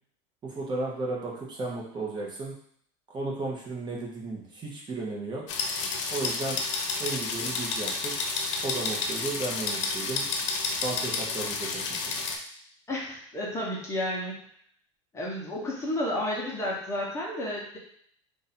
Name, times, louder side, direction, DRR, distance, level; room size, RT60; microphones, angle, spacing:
voice 1, 0.4-2.5 3.1-5.4 6.1-6.6 7.0-8.1 8.6-10.2 10.8-11.8 12.1-12.2, right 3 dB, 30° right, -3 dB, 1.0 m, -34 dB
sound 1, 5.5-12.4, left 4 dB, 75° left, 0.7 m, -30 dB
voice 2, 12.9-14.4 15.1-17.8, left 1 dB, 20° left, -4 dB, 1.0 m, -31 dB
2.7 x 2.6 x 4.2 m, 0.64 s
supercardioid pair, 115°, 16 cm